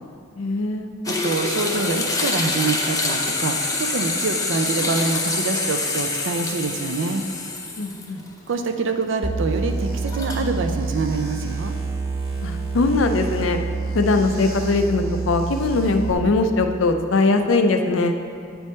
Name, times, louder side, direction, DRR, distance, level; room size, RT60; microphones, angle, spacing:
voice 1, 0.4-0.9 7.8-8.2 12.4-13.6 13.9-18.2, left 3 dB, 75° left, 6 dB, 0.5 m, -21 dB
sound 1, 1.0-8.3 8.7-8.8 10.0-10.4, left 3 dB, 20° left, 0.6 m, -26 dB
voice 2, 1.1-7.2 8.5-11.7, right 3 dB, 65° right, 6 dB, 0.5 m, -25 dB
sound 2, 9.2-16.1, right 4 dB, 15° right, 1.1 m, -28 dB
9.3 x 3.4 x 4.2 m, 2.3 s
head